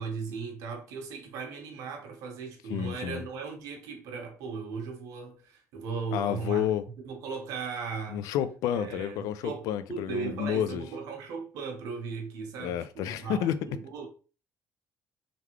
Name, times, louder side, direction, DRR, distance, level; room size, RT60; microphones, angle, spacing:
voice 1, 0.0-6.7 7.0-8.2 8.7-14.1, right 5 dB, 80° right, 1.2 m, -37 dB
voice 2, 2.7-3.2 6.1-6.9 8.1-10.8 12.6-13.6, left 10 dB, 90° left, 0.4 m, -30 dB
3.8 x 3.4 x 3.1 m
cardioid pair, 165°, 6 cm